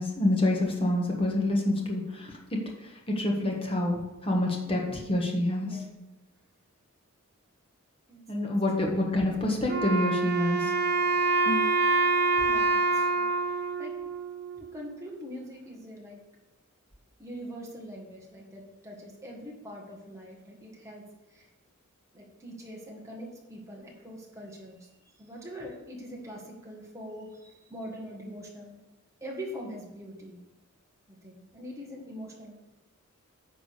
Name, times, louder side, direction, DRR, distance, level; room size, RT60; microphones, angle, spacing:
voice 1, 0.0-5.8 8.3-10.7 11.4-11.6, left 1 dB, 25° left, -1 dB, 1.4 m, -27 dB
voice 2, 8.1-8.5 12.4-14.0 14.6-16.2 17.2-21.5 22.1-28.8 29.2-30.4 31.1-32.6, equal, 15° right, -2 dB, 1.7 m, -43 dB
Wind instrument woodwind instrument, 9.7-14.8, right 3 dB, 50° right, 0.8 m, -26 dB
9.9 x 3.8 x 6.6 m, 1.0 s
head